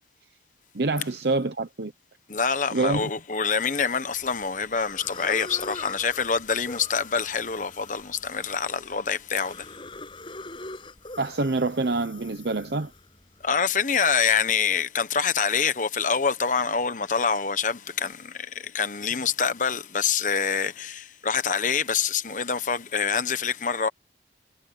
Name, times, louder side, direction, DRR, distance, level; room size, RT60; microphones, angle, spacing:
voice 1, 0.7-1.9 2.7-3.1 11.2-12.9, right 3 dB, 65° right, 0.8 m, -26 dB
voice 2, 2.3-9.7 13.4-23.9, left 6 dB, 45° left, 1.1 m, -26 dB
sound 1, 4.1-4.5 4.8-13.5, left 3 dB, 30° left, 7.0 m, -42 dB
head